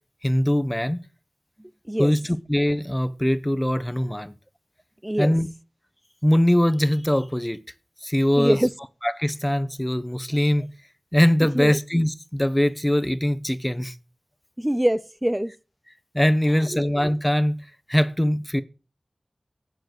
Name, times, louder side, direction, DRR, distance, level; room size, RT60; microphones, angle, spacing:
voice 1, 0.2-1.0 2.0-2.2 2.5-4.3 5.2-5.5 6.2-7.6 8.0-8.6 9.0-10.6 11.1-13.9 16.1-17.6 17.9-18.6, equal, 15° left, 1.1 m, -22 dB
voice 2, 1.6-2.1 5.0-5.3 8.4-8.7 11.5-11.8 14.6-15.5 16.6-16.8, right 1 dB, 15° right, 0.7 m, -24 dB
9.3 x 7.3 x 8.0 m
wide cardioid pair, 45°, 0 cm